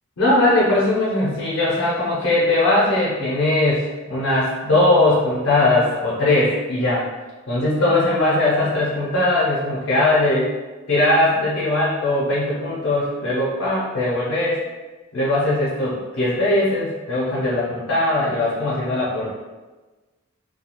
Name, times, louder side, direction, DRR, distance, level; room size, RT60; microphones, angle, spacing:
voice 1, 0.2-7.1 7.5-10.5 10.9-14.6 15.1-19.3, left 2 dB, 80° left, -6 dB, 0.6 m, -20 dB
2.3 x 2.2 x 2.9 m, 1.2 s
head